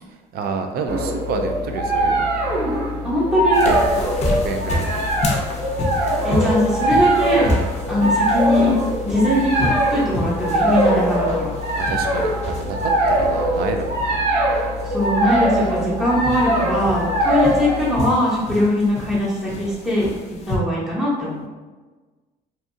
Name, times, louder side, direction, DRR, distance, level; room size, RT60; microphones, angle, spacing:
voice 1, 0.3-2.3 3.6-3.9 4.2-5.0 11.7-14.3 17.2-17.4, right 4 dB, 65° right, 5 dB, 0.4 m, -29 dB
sound 1, 0.9-18.0, right 1 dB, 80° right, 1.0 m, -21 dB
voice 2, 3.0-3.7 6.2-7.6 7.9-8.8 9.0-11.5 14.8-20.1 20.5-21.4, left 1 dB, 5° right, -8 dB, 0.8 m, -21 dB
sound 2, 3.5-20.6, left 2 dB, 40° left, 0.5 m, -30 dB
2.7 x 2.3 x 2.6 m, 1.3 s
cardioid pair, 110°, 17 cm